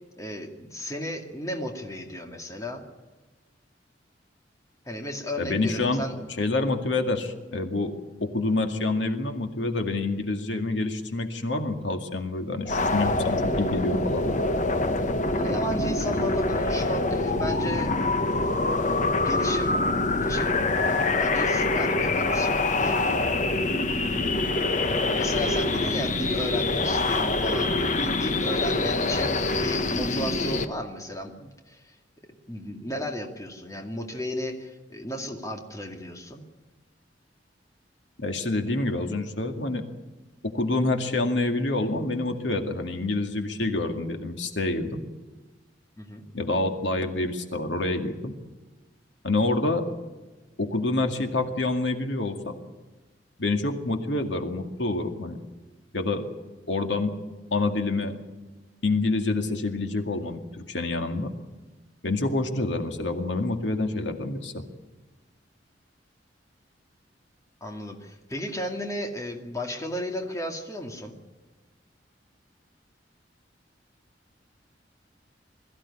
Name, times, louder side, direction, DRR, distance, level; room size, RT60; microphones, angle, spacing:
voice 1, 0.2-2.8 4.8-6.3 15.3-17.9 19.2-19.8 20.3-20.6 21.2-23.2 25.1-32.0 32.5-36.4 46.0-46.2 67.6-71.2, left 1 dB, 20° left, 3 dB, 2.3 m, -34 dB
voice 2, 5.4-6.0 6.4-7.9 8.2-14.5 38.2-39.8 40.4-45.0 46.3-48.4 49.2-49.8 50.6-52.5 53.4-55.4 55.9-56.3 56.7-57.2 57.5-58.1 58.8-61.3 62.0-64.6, left 2 dB, 85° left, 5 dB, 2.1 m, -27 dB
sound 1, 12.7-30.7, left 2 dB, 45° left, 1.3 m, -25 dB
21.5 x 15.0 x 9.9 m, 1.2 s
head